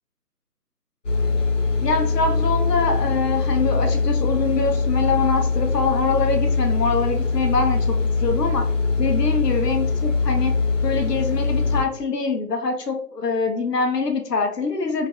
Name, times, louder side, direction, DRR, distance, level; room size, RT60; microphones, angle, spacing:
sound 1, 1.0-11.8, left 4 dB, 50° left, 0.9 m, -22 dB
voice 1, 1.8-8.7 9.0-10.6 10.8-15.1, left 4 dB, 75° left, 4 dB, 0.7 m, -24 dB
3.0 x 2.5 x 2.4 m, 0.65 s
figure-of-eight pair, 155°, 48 cm